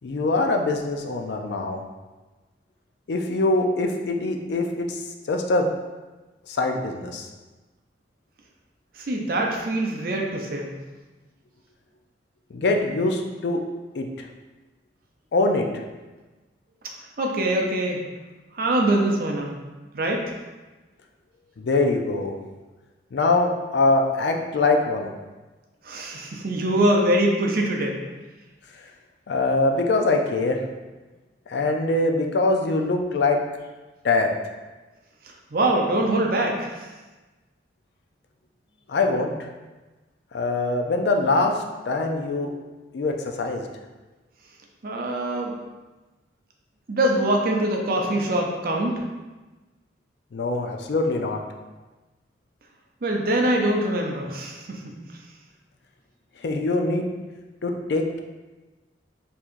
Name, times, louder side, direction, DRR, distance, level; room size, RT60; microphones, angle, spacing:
voice 1, 0.0-1.8 3.1-5.0 5.3-5.7 6.5-7.3 12.5-13.6 13.9-14.3 15.3-15.7 21.6-22.4 23.1-25.1 29.3-30.6 31.5-33.4 34.0-34.3 38.9-39.3 40.3-42.5 42.9-43.7 50.3-51.4 56.4-57.1 57.6-58.2, left 2 dB, 65° left, 3 dB, 0.4 m, -23 dB
voice 2, 8.9-10.7 17.0-18.1 18.5-19.6 19.9-20.3 25.8-28.0 35.2-36.9 44.8-45.5 46.9-49.0 53.0-55.0, right 1 dB, 50° right, 1 dB, 0.5 m, -24 dB
4.5 x 2.7 x 2.5 m, 1.2 s
head